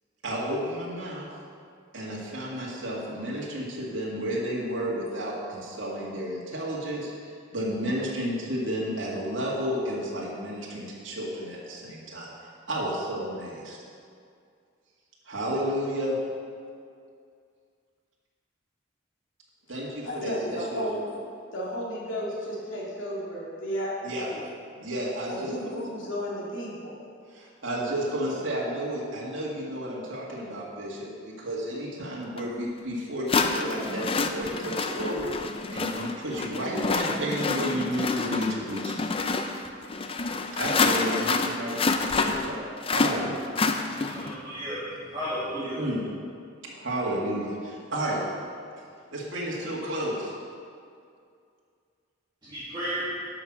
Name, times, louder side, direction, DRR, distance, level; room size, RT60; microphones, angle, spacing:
voice 1, 0.2-1.3 1.9-12.3 12.7-13.8 15.3-16.2 19.7-20.3 20.7-20.8 24.0-24.3 24.7-25.5 27.3-35.3 35.7-39.0 40.6-43.3 45.8-46.0 46.7-48.2 49.1-50.3, equal, 90° right, -5 dB, 2.1 m, -32 dB
voice 2, 20.0-21.2 21.5-24.5 25.3-27.0, equal, 85° left, -4 dB, 2.4 m, -33 dB
sound 1, 32.4-32.5 33.3-44.3, left 4 dB, 30° left, 0.5 m, -28 dB
voice 3, 44.1-44.8 45.1-45.8 52.4-53.0, equal, 25° right, -11 dB, 2.1 m, -33 dB
11.0 x 5.8 x 6.1 m, 2.3 s
head